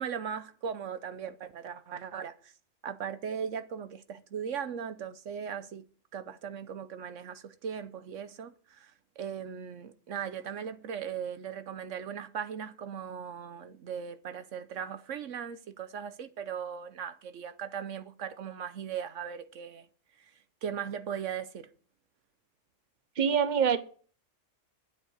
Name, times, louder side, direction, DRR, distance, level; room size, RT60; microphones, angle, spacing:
voice 1, 0.0-2.5 2.8-5.8 6.1-19.9 20.2-20.3 20.6-21.7, right 7 dB, 75° right, 1.1 m, -38 dB
voice 2, 23.2-23.8, right 7 dB, 40° right, 1.1 m, -24 dB
10.0 x 8.1 x 6.4 m
omnidirectional pair, 1.3 m